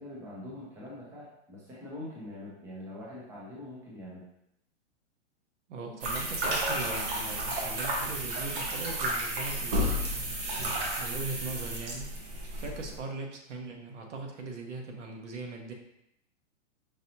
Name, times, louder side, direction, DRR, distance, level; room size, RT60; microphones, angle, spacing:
voice 1, 0.0-4.2, left 1 dB, 5° right, -6 dB, 0.5 m, -43 dB
voice 2, 5.7-10.4 11.0-12.1 12.5-15.7, right 3 dB, 70° right, 2 dB, 1.0 m, -39 dB
sound 1, 6.0-13.0, right 1 dB, 50° right, 1.1 m, -32 dB
5.2 x 2.7 x 2.8 m, 0.81 s
hypercardioid pair, 150°, 37 cm